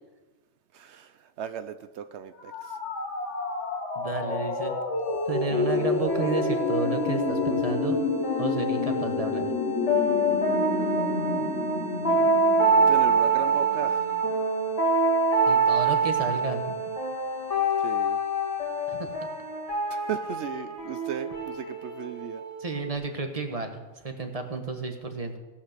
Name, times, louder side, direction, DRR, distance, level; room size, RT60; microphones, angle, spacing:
voice 1, 0.7-2.8 10.8-10.9 12.9-14.2 17.8-18.2 19.9-22.4, right 9 dB, 70° right, 10 dB, 0.8 m, -36 dB
sound 1, 2.4-14.2, left 3 dB, 75° left, 1.8 m, -29 dB
voice 2, 3.9-4.7 5.3-8.0 8.4-9.5 15.5-16.7 18.9-19.1 22.6-25.4, right 3 dB, 30° right, 5 dB, 1.2 m, -32 dB
sound 2, 4.8-21.7, right 2 dB, 90° right, 2.3 m, -54 dB
sound 3, 5.5-23.0, right 2 dB, 30° left, 1.8 m, -26 dB
17.0 x 5.7 x 6.5 m, 1.2 s
omnidirectional pair, 1.2 m